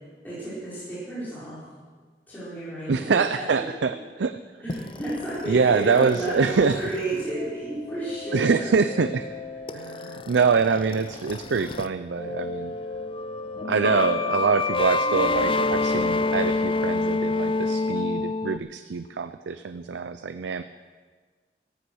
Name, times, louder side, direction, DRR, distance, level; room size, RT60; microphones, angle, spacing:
voice 1, 0.2-1.6 2.3-3.7 4.6-8.7, right 1 dB, 10° left, -11 dB, 4.8 m, -32 dB
voice 2, 2.9-4.4 5.5-6.8 8.3-9.3 9.7-12.7 13.7-20.6, right 5 dB, 90° right, 11 dB, 0.5 m, -24 dB
sound 1, 4.7-11.9 12.1-18.6, left 3 dB, 30° left, 0.5 m, -28 dB
14.5 x 14.0 x 6.3 m, 1.5 s
head